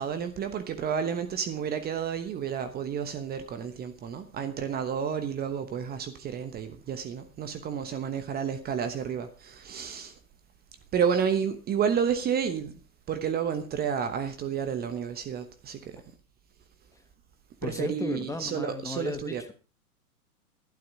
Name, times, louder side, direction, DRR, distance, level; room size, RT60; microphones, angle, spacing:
voice 1, 0.0-10.1 10.9-12.7 13.1-16.0 17.6-19.4, right 7 dB, 20° right, 1.1 m, -30 dB
voice 2, 17.6-19.5, left 3 dB, 5° left, 1.3 m, -35 dB
12.0 x 12.0 x 4.7 m
hypercardioid pair, 115°, 43 cm